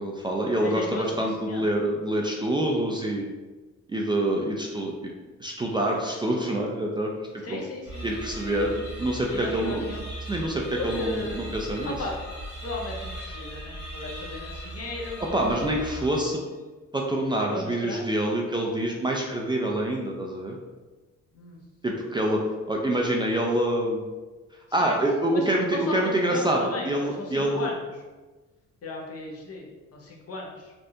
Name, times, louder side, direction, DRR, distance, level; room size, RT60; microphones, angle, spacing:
voice 1, 0.0-3.3 3.9-5.1 5.4-7.6 8.0-8.7 9.0-9.8 10.3-11.9 15.3-16.4 16.9-20.6 21.8-22.4 22.7-24.0 24.7-27.7, right 1 dB, 15° right, -1 dB, 0.4 m, -26 dB
voice 2, 0.6-1.7 7.4-8.1 9.3-10.0 10.8-11.5 11.8-12.2 12.6-15.7 17.5-18.0 21.3-21.6 24.8-24.9 25.3-27.7 28.8-30.7, left 2 dB, 55° left, -1 dB, 0.8 m, -35 dB
sound 1, 7.8-16.5, right 1 dB, 35° left, 1.3 m, -38 dB
3.3 x 2.5 x 2.7 m, 1.2 s
cardioid pair, 90°, 30 cm